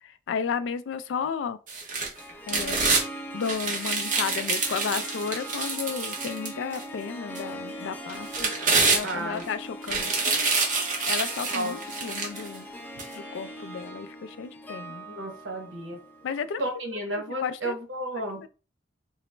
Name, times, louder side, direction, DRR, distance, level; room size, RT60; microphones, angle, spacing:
voice 1, 0.3-1.6 2.5-2.9 3.3-8.5 8.9-10.5 11.1-12.7 13.2-15.0 16.2-16.6 17.3-17.8 18.3-18.5, left 6 dB, 75° left, 0.3 m, -33 dB
sound 1, 1.7-3.0 3.4-6.8 7.3-7.4 8.1-9.4 9.8-12.5 13.0-13.1, right 4 dB, 45° right, 0.8 m, -27 dB
Harp, 2.2-16.6, equal, 10° left, 0.6 m, -41 dB
voice 2, 9.0-9.4 11.5-11.8 15.1-16.0 16.6-18.4, right 1 dB, 85° right, 0.9 m, -32 dB
3.9 x 2.0 x 3.2 m
head